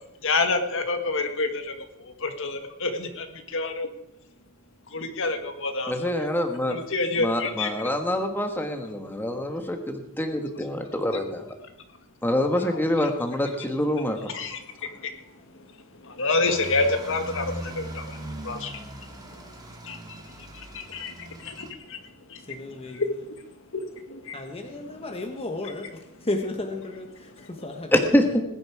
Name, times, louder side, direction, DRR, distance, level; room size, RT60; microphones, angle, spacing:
voice 1, 0.2-3.9 4.9-6.3 6.7-7.7 12.6-13.1 14.3-15.1 15.6-15.7 16.0-18.7 19.8-22.0 22.3-22.4 22.9-23.1 23.7-24.4 25.0-25.1 27.4-27.5, left 3 dB, 65° left, 6 dB, 1.7 m, -29 dB
voice 2, 5.9-6.7 7.2-11.4 12.2-14.2 27.9-28.4, left 1 dB, 10° left, 4 dB, 1.3 m, -25 dB
sound 1, 16.4-21.7, right 1 dB, 20° right, 1.9 m, -39 dB
voice 3, 22.5-23.1 24.3-27.9 28.2-28.4, left 2 dB, 30° left, 4 dB, 1.2 m, -33 dB
20.0 x 10.5 x 4.8 m, 0.87 s
head